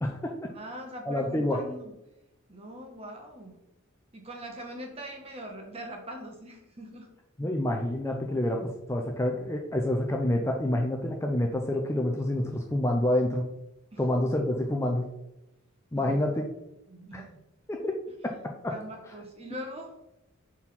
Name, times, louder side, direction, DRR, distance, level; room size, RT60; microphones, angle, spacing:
voice 1, 0.0-0.5 1.0-1.6 7.4-13.4 14.0-15.0 15.9-16.4 17.1-17.3 17.7-17.8 18.6-18.7, left 1 dB, 10° left, 2 dB, 0.5 m, -28 dB
voice 2, 0.5-1.9 2.5-3.6 4.1-7.1 13.9-14.0 15.9-16.3 16.9-17.3 18.7-19.9, right 1 dB, 25° right, 2 dB, 1.2 m, -42 dB
4.4 x 4.3 x 5.5 m, 0.90 s
head